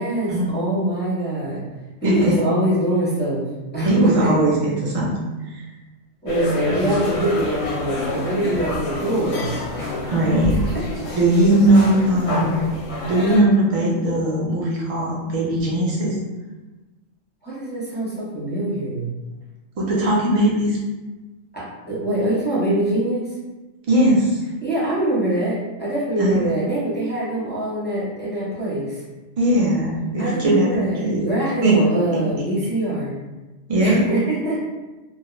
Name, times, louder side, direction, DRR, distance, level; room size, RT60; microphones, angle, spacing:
voice 1, 0.0-1.6 2.0-3.5 3.7-4.3 6.2-10.1 11.0-11.1 17.4-19.1 21.5-23.3 24.6-29.0 30.2-33.2 33.8-34.6, right 1 dB, 10° left, -9 dB, 0.6 m, -24 dB
voice 2, 2.0-2.4 3.8-5.1 5.4-5.6 10.1-10.6 11.2-12.7 13.1-16.1 19.8-20.8 23.9-24.4 26.2-26.5 29.4-31.3 31.6-31.9 32.1-32.2 33.7-34.0, right 1 dB, 50° right, -4 dB, 0.4 m, -19 dB
sound 1, 6.3-13.4, left 2 dB, 65° left, 0.7 m, -28 dB
2.3 x 2.0 x 3.0 m, 1.1 s
omnidirectional pair, 1.4 m